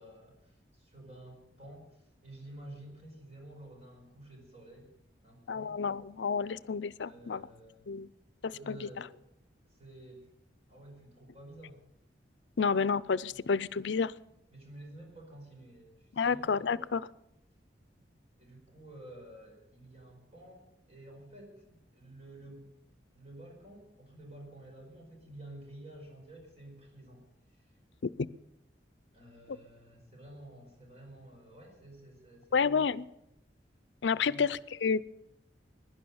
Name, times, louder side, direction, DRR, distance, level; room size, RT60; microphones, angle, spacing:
voice 1, 0.0-4.9 5.2-5.8 7.1-7.9 8.5-9.1 9.6-10.3 10.7-11.8 13.3-13.4 14.5-17.0 18.4-22.7 23.1-27.7 29.1-32.9 34.2-34.5, right 1 dB, 35° right, 0 dB, 4.8 m, -51 dB
voice 2, 5.5-7.4 7.9-8.1 8.7-8.9 12.6-14.1 16.2-17.0 28.0-28.3 32.5-33.0 34.0-35.0, left 5 dB, 85° left, 18 dB, 0.5 m, -30 dB
16.5 x 11.0 x 7.0 m, 0.83 s
head